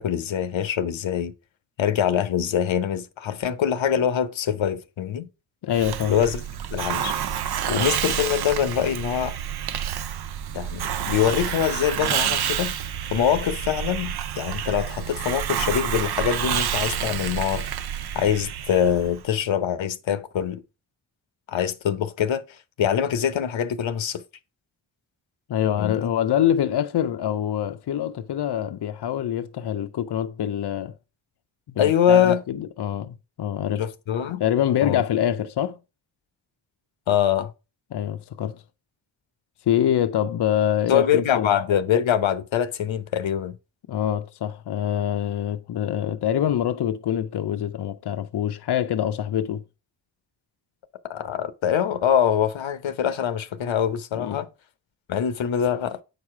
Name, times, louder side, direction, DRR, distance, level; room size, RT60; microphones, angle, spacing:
voice 1, 0.0-1.3 1.8-5.3 6.1-6.4 6.7-7.2 7.7-9.4 10.5-12.7 13.1-17.7 18.1-20.6 21.5-24.2 25.8-26.1 31.8-32.4 33.8-34.4 34.8-35.0 37.1-37.5 40.9-43.6 51.0-54.5 55.1-56.0, left 9 dB, 90° left, 0.8 m, -24 dB
voice 2, 5.6-6.2 25.5-30.9 31.7-33.8 34.4-35.8 37.9-38.6 39.7-41.5 43.9-49.6 54.2-54.4, left 10 dB, 60° left, 0.6 m, -25 dB
Hiss, 5.7-19.2, right 9 dB, 60° right, 0.5 m, -28 dB
8.1 x 4.8 x 4.7 m
wide cardioid pair, 85°, 45 cm